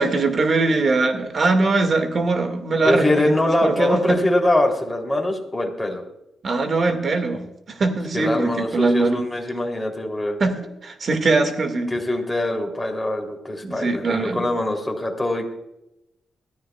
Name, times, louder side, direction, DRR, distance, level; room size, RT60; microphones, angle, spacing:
voice 1, 0.0-3.3 3.6-4.2 6.4-9.2 10.4-11.9 13.6-14.5, right 3 dB, 50° right, 7 dB, 1.9 m, -21 dB
voice 2, 2.8-6.0 8.1-10.4 11.9-15.5, left 1 dB, 15° left, 1 dB, 3.1 m, -23 dB
22.0 x 14.0 x 2.3 m, 0.90 s
cardioid pair, 85°, 0 cm